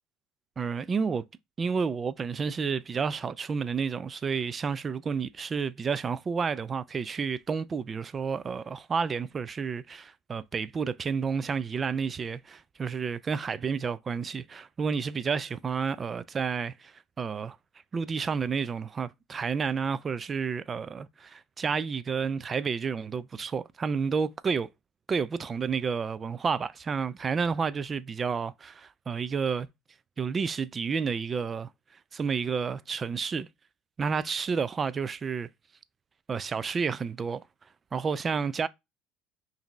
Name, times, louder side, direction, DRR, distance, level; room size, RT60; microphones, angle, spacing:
voice 1, 0.6-1.2 1.6-17.6 17.9-24.7 25.1-29.7 30.2-31.7 32.1-33.5 34.0-35.5 36.3-37.4 37.9-38.7, right 5 dB, 30° right, 0.3 m, -30 dB
5.0 x 2.7 x 3.0 m
supercardioid pair, 100°, 0 cm